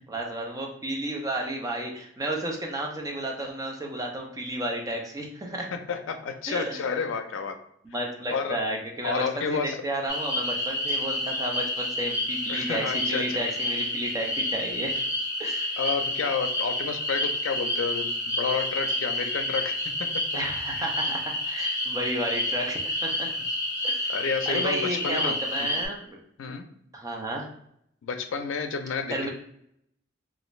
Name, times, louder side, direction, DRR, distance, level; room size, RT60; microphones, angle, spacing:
voice 1, 0.0-5.7 6.5-6.8 7.8-15.0 15.4-15.8 20.3-23.3 23.8-24.2 24.5-26.2 26.9-27.5 29.1-29.3, right 1 dB, 20° right, 0 dB, 0.5 m, -32 dB
voice 2, 5.7-7.6 8.3-8.6 9.0-9.8 12.5-13.4 15.8-19.8 20.8-20.9 24.1-25.7 26.4-26.7 28.0-29.3, left 5 dB, 85° left, 7 dB, 0.4 m, -30 dB
sound 1, 10.1-25.9, left 1 dB, 20° left, 0.8 m, -29 dB
3.2 x 2.5 x 3.0 m, 0.71 s
head